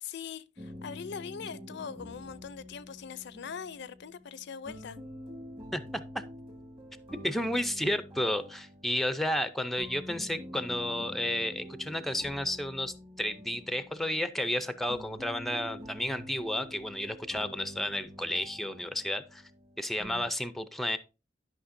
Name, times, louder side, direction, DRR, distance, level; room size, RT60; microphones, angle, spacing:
voice 1, 0.0-5.0, left 7 dB, 65° left, 0.5 m, -41 dB
sound 1, 0.6-20.3, equal, 30° right, 1.7 m, -47 dB
voice 2, 5.7-6.2 7.2-19.4 19.8-21.0, left 1 dB, ahead, 0.5 m, -32 dB
11.5 x 5.7 x 2.6 m
head